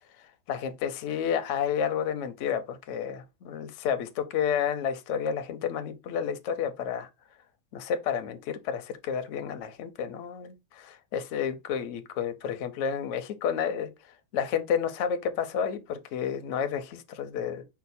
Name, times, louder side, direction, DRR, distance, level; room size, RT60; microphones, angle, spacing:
voice 1, 0.5-7.1 7.7-13.9 14.3-17.6, left 8 dB, 65° left, 0.7 m, -30 dB
4.9 x 2.1 x 4.0 m
omnidirectional pair, 1.7 m